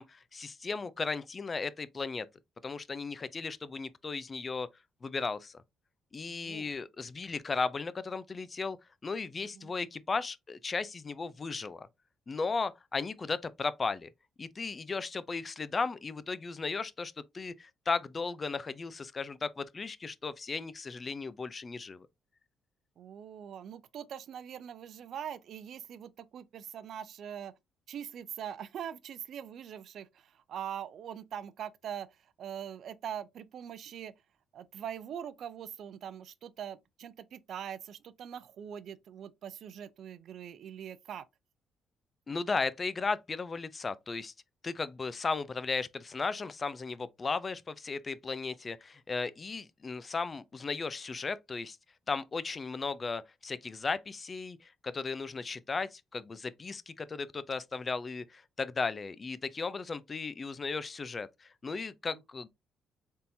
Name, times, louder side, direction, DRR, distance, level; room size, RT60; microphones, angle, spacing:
voice 1, 0.0-2.3 2.6-4.7 5.0-5.6 6.1-8.8 9.0-11.9 12.3-14.1 14.4-22.1 42.3-44.3 44.6-51.8 52.1-62.5, left 4 dB, 35° left, 0.4 m, -36 dB
voice 2, 6.2-6.7 9.3-9.7 23.0-27.5 27.9-34.1 34.5-41.2 62.0-62.2, right 9 dB, 70° right, 0.5 m, -42 dB
4.1 x 3.6 x 2.7 m
cardioid pair, 90°, 0 cm